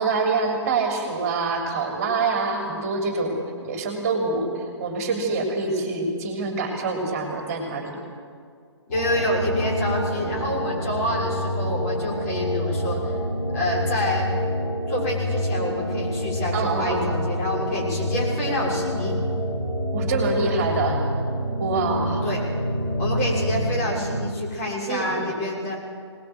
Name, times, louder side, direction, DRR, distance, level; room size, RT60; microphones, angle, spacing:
voice 1, 0.0-7.9 16.5-17.1 19.9-21.0 21.6-22.2 24.9-25.3, right 3 dB, 30° right, 2 dB, 3.3 m, -25 dB
sound 1, 8.9-24.2, equal, 80° left, 6.1 m, -27 dB
voice 2, 8.9-13.2 13.5-14.3 14.9-19.2 22.2-22.4 23.0-25.8, left 1 dB, 30° left, -3 dB, 6.1 m, -27 dB
23.5 x 19.5 x 7.9 m, 2.2 s
figure-of-eight pair, 135°, 15 cm